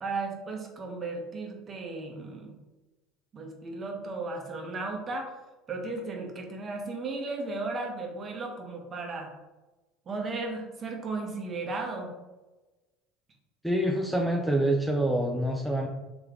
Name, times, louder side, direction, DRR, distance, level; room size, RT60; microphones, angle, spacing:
voice 1, 0.0-2.5 3.3-5.3 5.7-9.3 10.1-12.1, right 3 dB, 35° right, 2 dB, 0.9 m, -35 dB
voice 2, 13.6-15.9, right 1 dB, ahead, 1 dB, 0.4 m, -26 dB
3.1 x 3.0 x 3.6 m, 1.1 s
hypercardioid pair, 85°, 0 cm